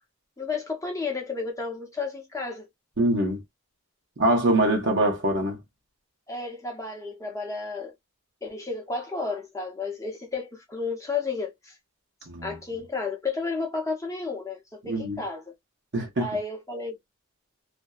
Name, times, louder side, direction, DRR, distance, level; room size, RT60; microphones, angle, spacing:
voice 1, 0.4-2.7 6.3-7.9 8.4-11.7 12.4-15.4 16.2-17.0, left 4 dB, 15° left, 0.6 m, -32 dB
voice 2, 3.0-3.4 4.2-5.6 12.3-12.6 14.8-15.2 15.9-16.3, right 1 dB, 50° right, 0.9 m, -24 dB
2.5 x 2.1 x 2.3 m
head